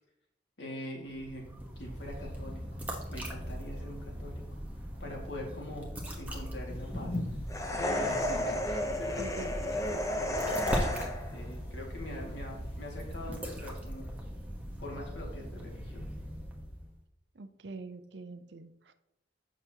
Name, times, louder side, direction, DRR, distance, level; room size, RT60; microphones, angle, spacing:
voice 1, 0.6-1.4 1.8-2.6 3.1-5.9 6.2-7.2 7.8-14.1 14.8-16.0, left 1 dB, 75° left, -1 dB, 2.0 m, -43 dB
sound 1, 1.0-16.9, equal, 10° right, 1.1 m, -40 dB
sound 2, 6.7-8.4 8.9-13.3, left 1 dB, 55° left, 2.2 m, -44 dB
sound 3, 7.5-11.4, left 1 dB, 20° left, 0.6 m, -32 dB
voice 2, 9.2-9.5 17.3-18.9, right 3 dB, 70° right, 10 dB, 0.6 m, -44 dB
7.7 x 6.1 x 2.8 m, 0.84 s
head